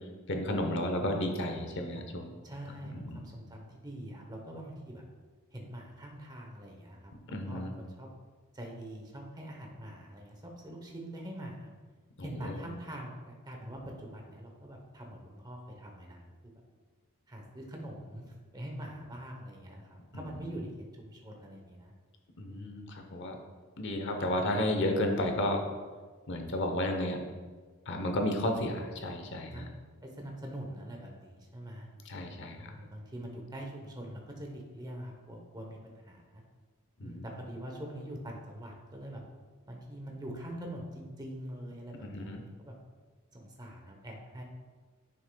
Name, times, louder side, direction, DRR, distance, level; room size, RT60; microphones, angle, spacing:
voice 1, 0.3-2.3 2.9-3.3 7.3-7.7 12.2-12.6 22.4-23.4 23.8-25.7 26.3-27.2 27.9-29.7 32.1-32.7 37.0-37.2 42.0-42.4, left 1 dB, 60° left, 4 dB, 0.9 m, -32 dB
voice 2, 2.4-5.0 5.5-8.1 8.5-11.7 12.2-16.2 17.3-20.7 21.0-21.9 22.4-22.9 29.5-29.7 30.0-31.9 32.5-36.4 37.0-39.2 39.7-42.7 43.3-44.4, right 1 dB, 20° right, 1 dB, 0.9 m, -44 dB
9.8 x 6.3 x 2.3 m, 1.4 s
head